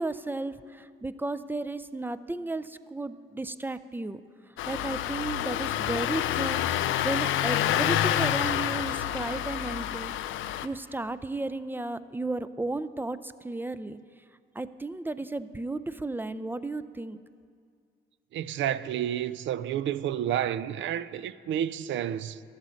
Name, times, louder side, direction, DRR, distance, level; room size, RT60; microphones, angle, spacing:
voice 1, 0.0-4.2 4.7-6.6 7.0-10.1 10.6-14.0 14.5-17.2, right 2 dB, 10° right, 0.4 m, -34 dB
Engine starting, 4.6-10.7, left 12 dB, 80° left, 0.5 m, -28 dB
voice 2, 18.3-22.4, right 10 dB, 70° right, 0.5 m, -30 dB
12.5 x 8.1 x 6.4 m
cardioid pair, 90°, 20 cm